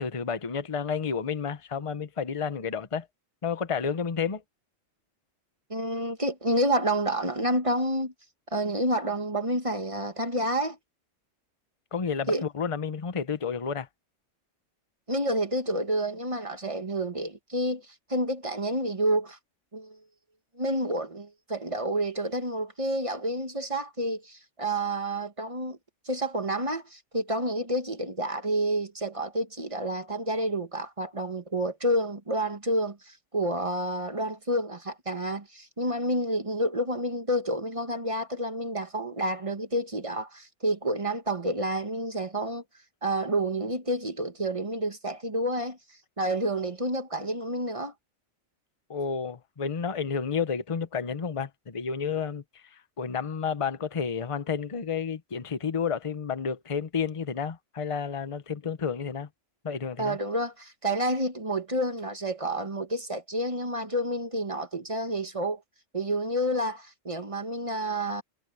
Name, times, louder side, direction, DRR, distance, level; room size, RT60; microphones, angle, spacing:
voice 1, 0.0-3.1 3.4-4.4 11.9-13.9 48.9-59.3 59.6-60.2, left 6 dB, 30° left, 0.9 m, -31 dB
voice 2, 5.7-8.1 8.5-10.8 12.3-12.4 15.1-19.4 19.7-20.0 20.6-25.8 26.1-42.6 43.0-45.8 46.2-47.9 60.0-65.6 65.9-68.2, right 1 dB, 25° right, 1.6 m, -29 dB
omnidirectional pair, 1.3 m